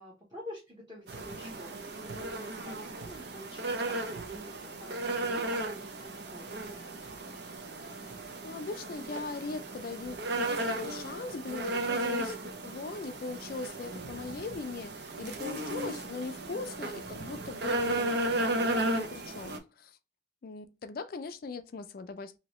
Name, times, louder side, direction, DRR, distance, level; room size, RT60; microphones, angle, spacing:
voice 1, 0.0-6.9 15.2-15.7, left 1 dB, 20° right, 1.0 m, -48 dB
sound 1, 1.1-19.6, right 2 dB, 55° right, 0.6 m, -35 dB
sound 2, 1.1-1.5 2.1-2.5 3.0-3.4 4.1-4.6 5.3-5.5 7.0-7.4 8.1-8.4 9.2-9.4 10.0-10.4, right 2 dB, 90° right, 0.8 m, -51 dB
voice 2, 8.0-20.0 20.4-22.4, left 4 dB, 50° left, 0.4 m, -40 dB
2.9 x 2.7 x 3.0 m
head